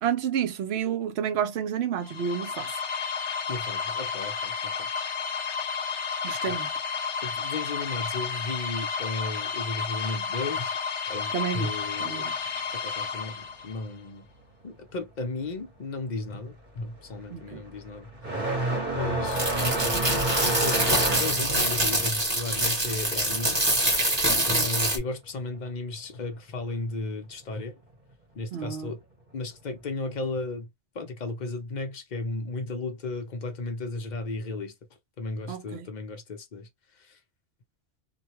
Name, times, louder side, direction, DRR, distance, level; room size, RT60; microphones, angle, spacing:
voice 1, 0.0-2.7 6.2-6.7 11.3-11.7 12.0-12.3 17.3-17.6 24.3-24.7 28.5-28.9 35.5-35.9, right 8 dB, 70° right, 0.8 m, -30 dB
sound 1, 2.0-13.9, left 6 dB, 80° left, 0.9 m, -32 dB
voice 2, 3.5-4.9 6.5-6.6 7.2-10.7 11.1-12.3 12.8-14.3 14.6-18.1 18.9-23.6 24.5-27.7 28.3-29.0 29.3-30.7 30.9-34.7 35.2-36.7, left 3 dB, 45° left, 0.8 m, -34 dB
sound 2, 15.7-16.0 16.3-24.6 24.9-25.9 26.9-27.0 27.8-27.9 29.7-29.8, right 2 dB, 40° right, 1.1 m, -30 dB
sound 3, 19.3-25.0, right 1 dB, 25° right, 1.2 m, -25 dB
2.5 x 2.2 x 2.8 m
omnidirectional pair, 1.2 m